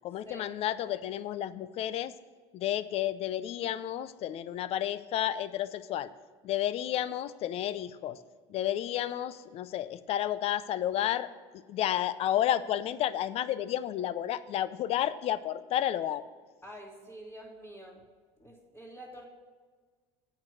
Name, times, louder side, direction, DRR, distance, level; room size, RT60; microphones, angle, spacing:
voice 1, 0.0-2.1 2.5-6.1 6.4-8.2 8.5-11.3 11.7-16.2, left 11 dB, 45° left, 15 dB, 0.5 m, -31 dB
voice 2, 16.6-18.0 18.4-19.2, equal, 15° left, -6 dB, 2.2 m, -47 dB
8.7 x 6.1 x 7.6 m, 1.5 s
supercardioid pair, 115°, 14 cm